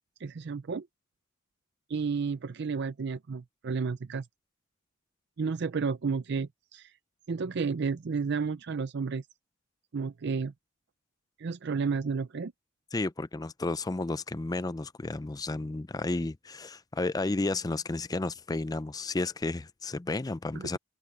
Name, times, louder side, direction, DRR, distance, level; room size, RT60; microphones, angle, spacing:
voice 1, 0.2-0.9 1.9-4.3 5.4-6.9 7.3-9.2 9.9-10.5 11.4-12.5 20.5-20.8, right 5 dB, 55° right, 0.5 m, -32 dB
voice 2, 12.9-20.8, left 2 dB, 20° left, 0.4 m, -32 dB
open air
head